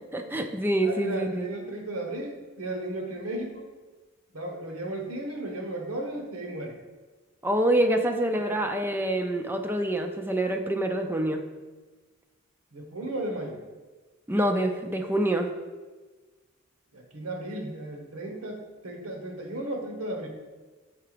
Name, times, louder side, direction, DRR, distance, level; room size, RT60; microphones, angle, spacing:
voice 1, 0.1-1.4 7.4-11.4 14.3-15.5, right 1 dB, 10° right, 5 dB, 0.4 m, -26 dB
voice 2, 0.8-3.7 4.3-6.8 8.3-8.4 12.7-13.6 16.9-20.3, right 1 dB, 85° right, 2 dB, 1.2 m, -35 dB
5.8 x 3.9 x 4.9 m, 1.3 s
head